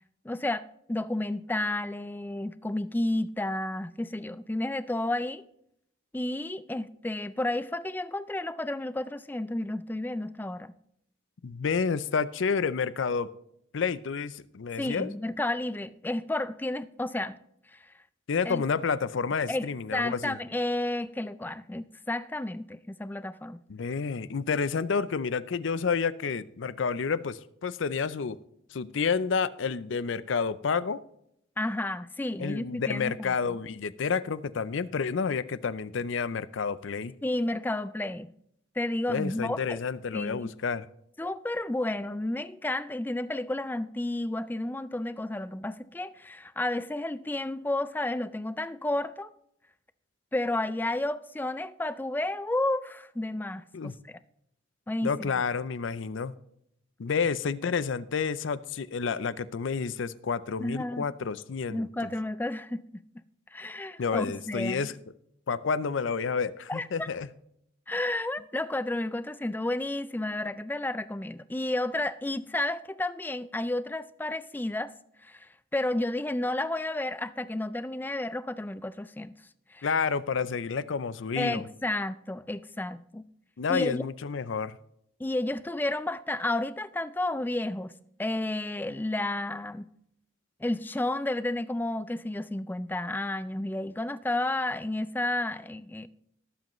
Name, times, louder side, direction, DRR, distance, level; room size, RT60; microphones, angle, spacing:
voice 1, 0.2-5.4 6.1-10.7 14.8-17.4 17.7-17.8 18.5-18.6 19.5-23.6 31.6-33.4 37.2-38.3 38.8-39.8 40.1-40.5 41.2-49.3 50.3-54.2 54.9-55.3 60.6-61.1 61.7-63.0 63.5-64.9 66.7-67.1 67.9-74.9 75.2-79.3 79.7-79.9 81.4-83.3 83.7-84.0 85.2-87.9 88.2-89.8 90.6-96.1, left 1 dB, 10° left, 0.3 m, -31 dB
voice 2, 11.4-13.3 13.7-15.1 18.3-20.4 23.7-28.4 28.7-31.0 32.4-37.1 39.1-40.9 53.7-53.9 55.0-56.3 57.0-61.9 64.0-64.9 65.5-67.3 79.8-81.6 83.6-84.8, left 5 dB, 70° left, 0.5 m, -29 dB
19.5 x 7.6 x 3.1 m
head